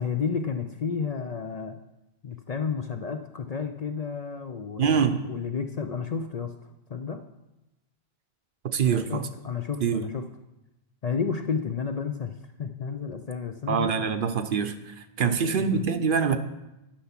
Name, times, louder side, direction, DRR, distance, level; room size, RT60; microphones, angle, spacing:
voice 1, 0.0-1.8 2.2-6.5 6.9-7.2 8.8-10.2 11.0-12.3 12.6-14.1 15.2-15.8, left 6 dB, 50° left, 6 dB, 0.5 m, -31 dB
voice 2, 4.8-5.3 8.7-9.2 9.8-10.0 13.7-16.4, right 6 dB, 60° right, 8 dB, 0.8 m, -25 dB
11.5 x 5.8 x 5.8 m, 0.95 s
omnidirectional pair, 1.1 m